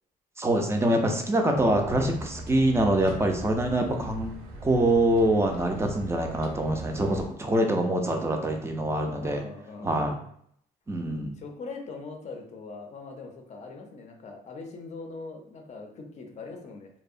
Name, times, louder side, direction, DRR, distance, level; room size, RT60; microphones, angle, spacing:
voice 1, 0.4-4.3 4.6-9.4 9.8-10.1 10.9-11.4, right 1 dB, 15° right, 3 dB, 0.4 m, -25 dB
sound 1, 1.5-7.3, right 1 dB, 80° right, 0.5 m, -41 dB
voice 2, 9.2-10.0 11.4-16.9, left 4 dB, 45° left, 3 dB, 0.5 m, -41 dB
2.6 x 2.0 x 2.4 m, 0.68 s
cardioid pair, 110°, 17 cm